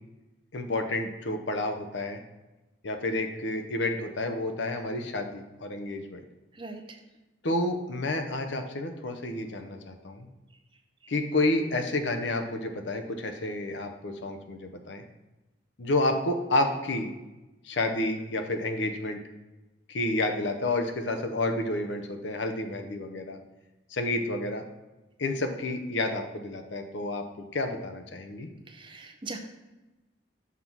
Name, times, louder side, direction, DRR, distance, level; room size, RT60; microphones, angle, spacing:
voice 1, 0.5-2.2 2.8-6.2 7.4-10.3 11.1-15.0 15.8-17.1 17.6-19.2 19.9-23.4 23.9-24.6 25.2-27.2 27.5-28.5, left 2 dB, 75° left, 6 dB, 0.8 m, -30 dB
voice 2, 28.7-29.4, right 3 dB, 25° right, 4 dB, 0.7 m, -40 dB
5.9 x 5.6 x 4.5 m, 1.1 s
head